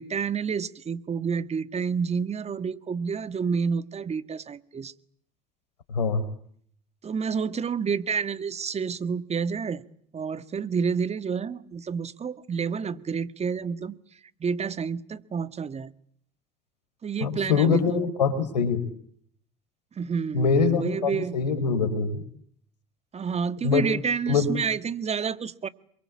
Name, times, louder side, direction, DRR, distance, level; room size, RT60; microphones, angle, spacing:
voice 1, 0.0-4.9 7.0-9.8 10.1-14.0 14.4-15.9 17.0-18.0 20.0-21.3 23.1-25.7, right 6 dB, 30° right, 1.8 m, -29 dB
voice 2, 17.2-18.8 20.3-22.2 23.6-23.9 24.3-24.5, left 5 dB, 85° left, 4.5 m, -23 dB
28.0 x 24.5 x 8.6 m
hypercardioid pair, 65°, 21 cm